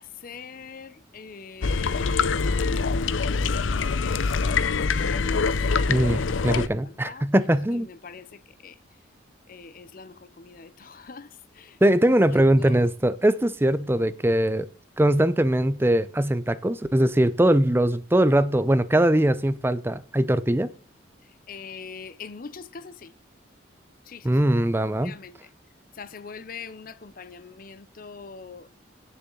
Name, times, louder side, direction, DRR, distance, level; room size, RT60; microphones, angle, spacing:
voice 1, 0.0-2.9 3.9-5.5 6.1-7.3 7.7-8.8 9.5-11.8 12.3-12.9 21.5-23.1 24.1-24.3 24.8-25.5 26.0-28.7, left 5 dB, 45° left, 0.5 m, -43 dB
sound 1, 1.6-6.7, left 4 dB, 90° left, 0.6 m, -24 dB
voice 2, 5.9-7.9 11.8-14.7 15.0-20.7 24.2-25.1, right 1 dB, 10° right, 0.5 m, -21 dB
17.0 x 6.9 x 3.8 m
head